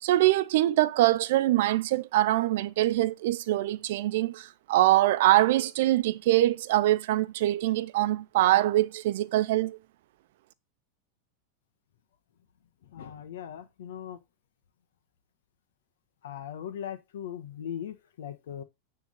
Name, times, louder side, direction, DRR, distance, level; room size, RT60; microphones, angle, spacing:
voice 1, 0.0-9.8, right 15 dB, 70° right, 0.7 m, -24 dB
voice 2, 12.9-14.2 16.2-18.6, left 9 dB, 85° left, 1.4 m, -39 dB
9.7 x 3.8 x 5.5 m
supercardioid pair, 145°, 0 cm